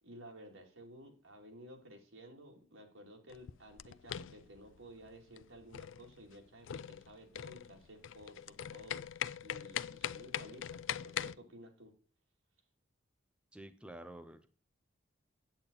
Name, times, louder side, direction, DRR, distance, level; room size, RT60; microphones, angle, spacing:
voice 1, 0.0-11.9, equal, 85° right, 2 dB, 2.9 m, -54 dB
sound 1, 3.3-11.4, left 9 dB, 75° left, 0.4 m, -42 dB
voice 2, 13.5-14.5, right 1 dB, 5° right, 8 dB, 0.7 m, -49 dB
8.9 x 8.4 x 4.0 m, 0.38 s
head